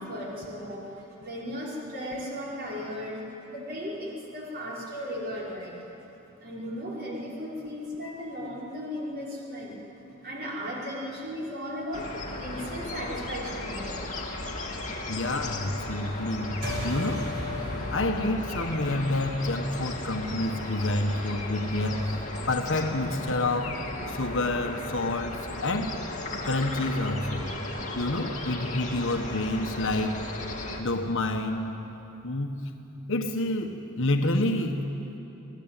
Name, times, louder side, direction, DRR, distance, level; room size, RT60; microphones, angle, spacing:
voice 1, 0.0-5.8 6.4-9.8 10.2-14.1 14.7-14.9, equal, 50° right, -5 dB, 5.2 m, -36 dB
sound 1, 11.9-30.8, left 2 dB, 35° left, 2.8 m, -36 dB
voice 2, 15.1-16.6 16.8-17.3 17.7-22.0 22.5-23.8 24.1-25.9 26.4-27.5 27.9-30.2 30.8-31.8 32.2-32.7 33.1-34.8, left 2 dB, 65° left, 3 dB, 1.5 m, -28 dB
sound 2, 16.6-21.4, left 1 dB, 65° right, 5.3 m, -37 dB
27.0 x 18.0 x 9.2 m, 2.9 s
head